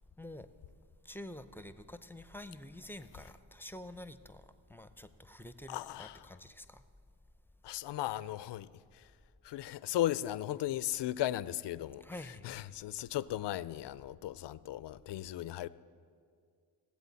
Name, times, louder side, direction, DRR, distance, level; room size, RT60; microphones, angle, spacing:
voice 1, 1.0-4.4 4.7-6.8 12.0-12.6, left 1 dB, 5° left, 0.5 m, -48 dB
voice 2, 5.7-6.2 7.6-9.1 9.4-12.1 12.4-15.7, left 13 dB, 60° left, 0.5 m, -36 dB
17.5 x 7.9 x 4.1 m
supercardioid pair, 45°, 48 cm